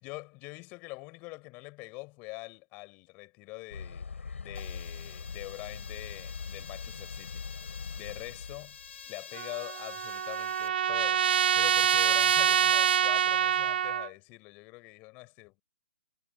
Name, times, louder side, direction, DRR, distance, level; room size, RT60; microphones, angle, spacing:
voice 1, 0.0-4.1 4.4-7.5 8.0-8.8 9.0-15.6, left 26 dB, 25° left, 5.9 m, -44 dB
sound 1, 3.7-9.1, left 5 dB, 80° left, 6.2 m, -42 dB
sound 2, 4.5-10.7, left 7 dB, 65° left, 1.7 m, -48 dB
Trumpet, 9.4-14.1, right 9 dB, 50° right, 0.4 m, -26 dB
hypercardioid pair, 155°, 7 cm